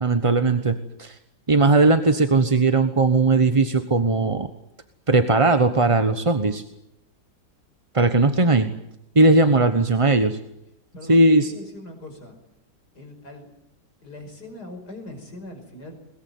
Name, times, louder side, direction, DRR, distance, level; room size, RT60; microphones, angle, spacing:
voice 1, 0.0-1.2 1.5-4.5 5.1-6.6 7.9-8.7 9.1-10.4 11.1-11.5, right 3 dB, 25° right, 8 dB, 0.9 m, -18 dB
voice 2, 10.9-12.3 12.9-13.5 14.0-16.0, left 1 dB, 70° left, 5 dB, 5.9 m, -41 dB
22.0 x 21.5 x 9.4 m, 0.85 s
omnidirectional pair, 1.8 m